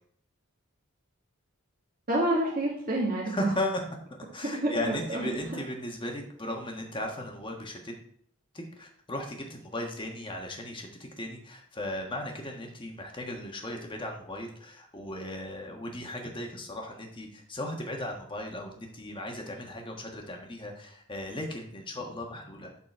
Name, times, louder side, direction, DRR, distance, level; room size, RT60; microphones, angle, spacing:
voice 1, 2.1-3.5 4.5-5.2, right 1 dB, 40° right, -6 dB, 2.0 m, -28 dB
voice 2, 3.2-3.8 4.3-7.9 8.5-22.8, left 1 dB, 25° left, 1 dB, 1.4 m, -36 dB
12.0 x 4.4 x 4.4 m, 0.63 s
head